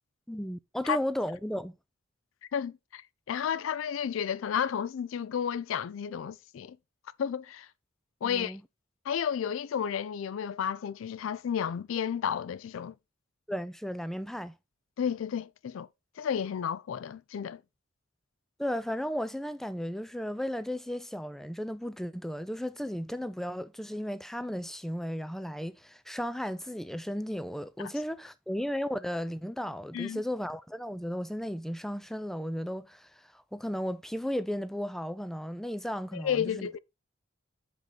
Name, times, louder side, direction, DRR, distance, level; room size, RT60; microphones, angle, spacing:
voice 1, 0.3-1.8 8.2-8.6 13.5-14.6 18.6-36.7, equal, ahead, 0.4 m, -35 dB
voice 2, 2.5-3.0 3.3-6.8 7.2-7.7 8.2-8.6 9.1-12.9 15.0-15.9 16.2-17.6 29.9-30.2 36.1-36.8, left 8 dB, 75° left, 0.4 m, -32 dB
5.9 x 5.2 x 4.0 m
head